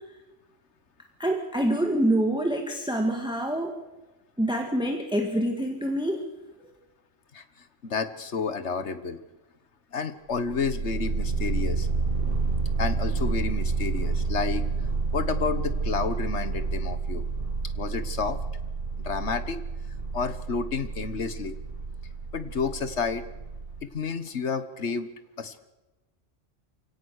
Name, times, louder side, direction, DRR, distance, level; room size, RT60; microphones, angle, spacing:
voice 1, 1.2-3.7 4.4-6.2, right 1 dB, 5° right, 3 dB, 1.9 m, -26 dB
voice 2, 7.8-9.2 9.9-11.9 12.8-14.6 15.1-17.2 17.7-18.4 19.0-19.6 20.1-21.6 22.3-23.3 23.8-25.1 25.4-25.5, left 5 dB, 65° left, 11 dB, 1.7 m, -30 dB
sound 1, 10.5-23.8, right 4 dB, 45° right, 2.6 m, -29 dB
28.5 x 17.5 x 6.6 m, 1.1 s
omnidirectional pair, 1.3 m